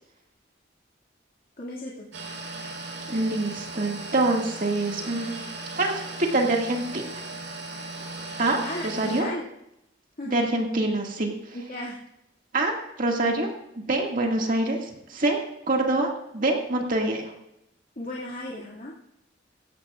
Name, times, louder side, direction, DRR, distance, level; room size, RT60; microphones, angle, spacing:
voice 1, 1.6-2.1 8.0-8.1 8.6-9.4 10.2-10.3 11.5-12.0 18.0-18.9, left 1 dB, 45° left, -5 dB, 2.3 m, -35 dB
sound 1, 2.1-9.2, right 2 dB, 80° right, 4.4 m, -37 dB
voice 2, 3.1-5.4 5.8-6.0 6.3-7.0 8.4-8.6 8.8-9.3 10.2-11.3 12.5-12.7 13.0-13.5 13.9-15.4 15.7-17.3, right 2 dB, 45° right, 1 dB, 2.1 m, -25 dB
17.5 x 16.0 x 2.5 m, 0.83 s
head